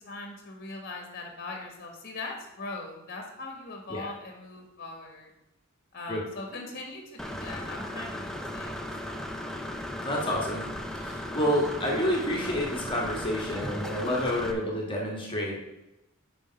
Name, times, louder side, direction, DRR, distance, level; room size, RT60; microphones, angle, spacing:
voice 1, 0.0-5.3 5.9-9.3 11.4-11.8 14.0-14.9, left 3 dB, 45° left, 2 dB, 1.5 m, -41 dB
Engine / Mechanisms, 7.2-14.5, left 1 dB, 5° left, 0.6 m, -36 dB
voice 2, 10.0-10.6 11.0-15.6, equal, 25° left, -2 dB, 1.8 m, -29 dB
7.3 x 5.1 x 5.2 m, 0.94 s
head